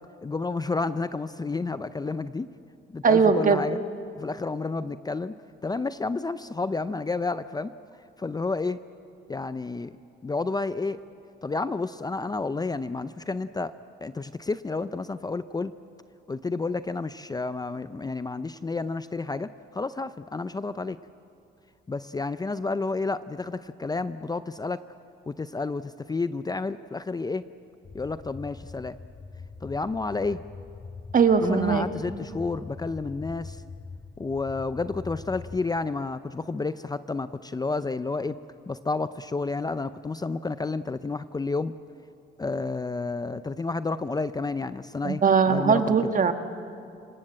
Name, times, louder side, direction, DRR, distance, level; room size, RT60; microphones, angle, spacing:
voice 1, 0.2-2.5 2.9-3.8 4.2-5.3 5.6-7.7 8.2-8.8 9.3-9.9 10.2-11.0 11.4-13.7 14.0-15.7 16.3-21.0 21.9-24.8 25.3-27.5 27.9-29.0 29.6-30.4 31.4-33.6 34.2-38.4 38.7-41.7 42.4-45.2 45.5-46.0, left 3 dB, 20° left, 13 dB, 0.5 m, -30 dB
voice 2, 3.0-3.6 31.1-31.8 45.0-46.3, right 6 dB, 40° right, 7 dB, 1.5 m, -20 dB
sound 1, 27.8-35.6, left 4 dB, 40° left, 2.3 m, -43 dB
27.5 x 18.5 x 7.9 m, 2.5 s
cardioid pair, 90°, 20 cm